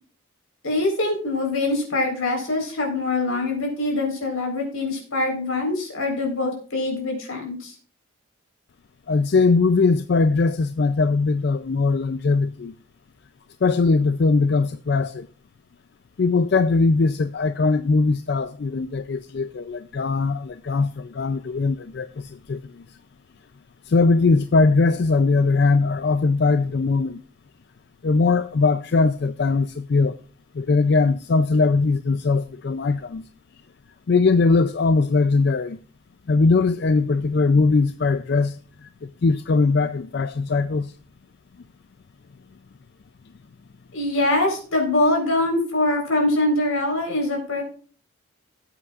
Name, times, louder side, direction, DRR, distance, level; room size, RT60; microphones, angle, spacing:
voice 1, 0.6-7.8 43.9-47.6, left 2 dB, 80° left, 4.1 m, -23 dB
voice 2, 9.1-12.7 13.6-15.3 16.2-23.0 23.8-27.2 28.0-30.2 30.5-33.2 34.1-35.8 36.3-40.9, left 3 dB, 50° left, 0.4 m, -20 dB
17.5 x 8.2 x 2.4 m
head